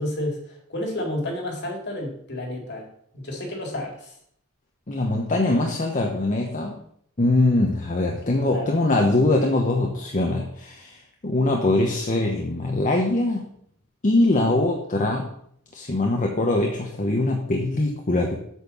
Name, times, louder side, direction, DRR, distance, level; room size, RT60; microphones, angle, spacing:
voice 1, 0.0-4.1 8.4-8.8, left 1 dB, 50° left, 1 dB, 2.4 m, -31 dB
voice 2, 4.9-6.7 7.2-13.5 14.0-15.3 15.7-18.4, left 2 dB, 35° left, 1 dB, 1.0 m, -22 dB
8.4 x 4.5 x 6.9 m, 0.68 s
head